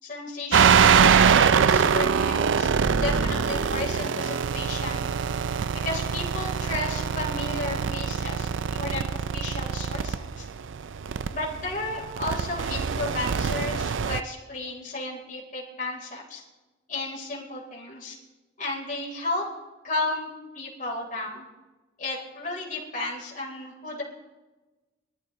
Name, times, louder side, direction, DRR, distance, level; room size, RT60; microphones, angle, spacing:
voice 1, 0.0-2.7 3.0-5.1 5.7-10.5 11.3-16.4 16.9-18.2 18.6-19.4 19.8-20.3 20.5-21.5 22.0-24.0, left 2 dB, 45° left, -3 dB, 3.8 m, -33 dB
sound 1, 0.5-14.2, right 6 dB, 85° right, 0.5 m, -23 dB
22.5 x 13.5 x 3.1 m, 1.2 s
head